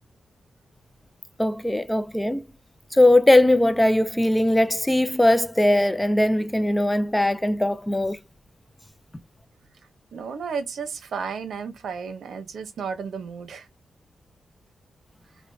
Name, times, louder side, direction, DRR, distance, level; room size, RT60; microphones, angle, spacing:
voice 1, 1.4-2.4 2.9-8.2, left 1 dB, 10° left, 0.4 m, -20 dB
voice 2, 10.1-13.7, right 6 dB, 85° right, 0.7 m, -33 dB
4.8 x 2.2 x 2.6 m
wide cardioid pair, 125°, 0 cm